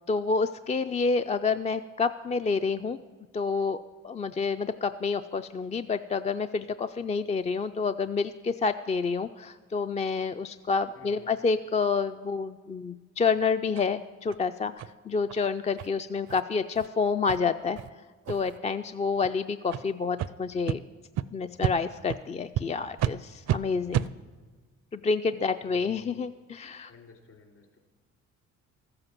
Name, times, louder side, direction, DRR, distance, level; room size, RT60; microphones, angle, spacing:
voice 1, 0.1-3.0 3.3-3.8 4.0-14.7 15.1-17.8 18.3-20.8 21.3-24.1 24.9-26.9, left 4 dB, 25° left, 10 dB, 0.3 m, -28 dB
voice 2, 10.9-11.3 25.2-25.3 25.6-26.3 26.9-27.8, left 4 dB, 55° left, 1 dB, 3.4 m, -52 dB
sound 1, 13.7-13.9 14.3-14.4 14.8-14.9 15.3-15.4 15.8-15.9 16.3-16.4 16.7-16.9 17.3-17.4 17.8-17.9 18.2-18.6 19.2-19.3 19.7-19.8 20.2-20.3 20.7-20.8 21.2-21.3 21.6-21.7 22.1-22.2 22.5-22.6 23.0-23.1 23.5-23.6 23.9-24.1, right 11 dB, 60° right, 0.5 m, -29 dB
14.0 x 7.8 x 7.4 m, 1.4 s
cardioid pair, 90°, 30 cm